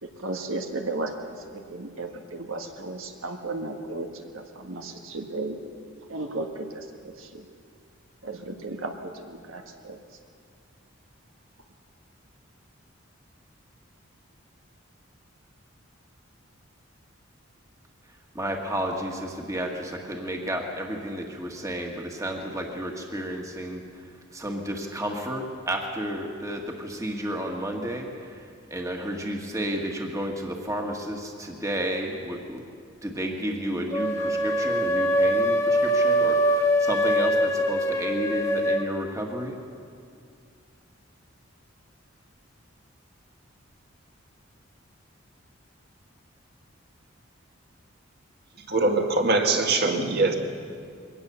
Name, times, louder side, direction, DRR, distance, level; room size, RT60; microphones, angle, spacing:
voice 1, 0.0-4.1 4.3-5.6 6.1-6.9 7.2-7.4 8.2-10.0, right 2 dB, 80° right, 4 dB, 1.6 m, -34 dB
voice 2, 18.3-24.0 24.3-32.6 33.0-39.6, equal, 15° right, 1 dB, 1.8 m, -32 dB
sound 1, 33.9-38.9, equal, 15° left, 1.7 m, -23 dB
voice 3, 48.7-50.3, right 3 dB, 50° right, 3 dB, 1.9 m, -22 dB
23.0 x 18.0 x 7.0 m, 2.3 s
head